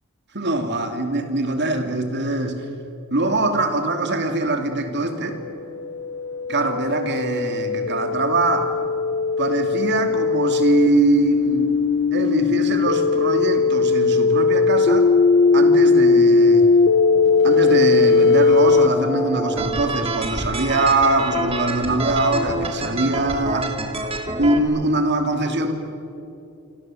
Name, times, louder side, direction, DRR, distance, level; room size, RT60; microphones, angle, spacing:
voice 1, 0.3-2.7 3.1-5.4 6.5-8.7 9.4-11.7 12.1-15.1 15.5-16.7 17.4-23.8 24.4-25.7, right 2 dB, 50° right, 5 dB, 2.8 m, -22 dB
sound 1, 5.6-18.9, left 4 dB, 50° left, 0.9 m, -18 dB
sound 2, 14.4-19.6, left 3 dB, 30° left, 2.6 m, -35 dB
sound 3, 19.6-24.6, right 2 dB, 25° right, 2.3 m, -27 dB
27.0 x 26.5 x 7.8 m, 2.9 s
head